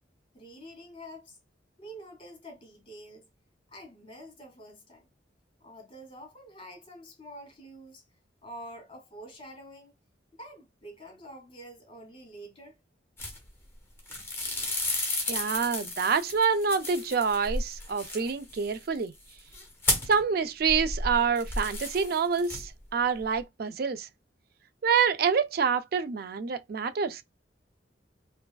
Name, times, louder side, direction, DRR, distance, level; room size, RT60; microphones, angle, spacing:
voice 1, 0.3-1.4 1.8-3.3 3.7-5.1 5.6-8.0 8.4-9.9 10.3-12.8, equal, 30° left, 1.9 m, -47 dB
sound 1, 13.2-13.7 14.0-20.3 20.6-22.9 23.1-23.4, left 2 dB, 15° left, 1.0 m, -33 dB
voice 2, 15.3-19.1 20.1-24.1 24.8-27.2, right 6 dB, 55° right, 0.4 m, -27 dB
4.6 x 2.4 x 2.2 m
head